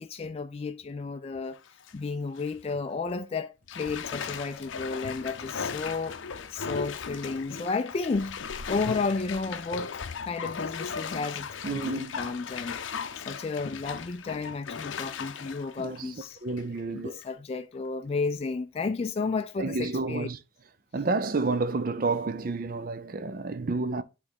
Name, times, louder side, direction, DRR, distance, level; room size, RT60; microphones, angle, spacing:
voice 1, 0.0-1.6 1.9-6.2 6.5-8.4 8.7-9.9 10.3-12.8 13.2-16.4 16.9-20.3, left 4 dB, 30° left, 0.3 m, -32 dB
Bathtub (filling or washing), 1.5-1.9 2.4-2.5 3.7-16.8 17.2-17.3, left 6 dB, 85° left, 0.6 m, -37 dB
voice 2, 11.6-12.2 15.8-16.1 16.4-17.2 19.6-20.4 20.9-24.0, right 3 dB, 45° right, 0.5 m, -30 dB
9.8 x 3.3 x 4.0 m
head